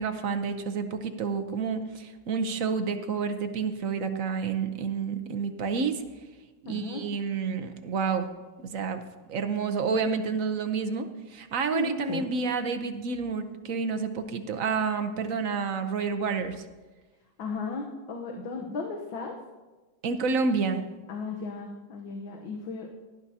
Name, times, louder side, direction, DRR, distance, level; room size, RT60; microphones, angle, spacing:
voice 1, 0.0-6.0 6.7-8.3 8.6-9.0 9.3-16.6 20.0-20.8, right 5 dB, 55° right, 7 dB, 0.9 m, -29 dB
voice 2, 6.7-7.0 11.7-12.3 17.4-19.3 21.1-22.9, left 4 dB, 80° left, 1 dB, 1.8 m, -35 dB
18.0 x 12.0 x 2.8 m, 1.2 s
omnidirectional pair, 2.1 m